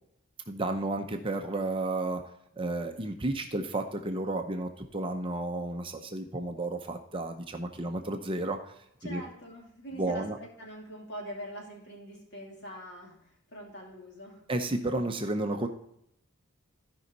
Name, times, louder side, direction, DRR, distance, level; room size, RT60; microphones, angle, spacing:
voice 1, 0.5-2.2 2.6-8.6 9.0-9.2 10.0-10.4 14.5-15.7, right 2 dB, 25° right, 5 dB, 0.7 m, -32 dB
voice 2, 9.0-14.4, equal, 55° left, -1 dB, 2.8 m, -44 dB
13.5 x 5.4 x 3.9 m, 0.77 s
head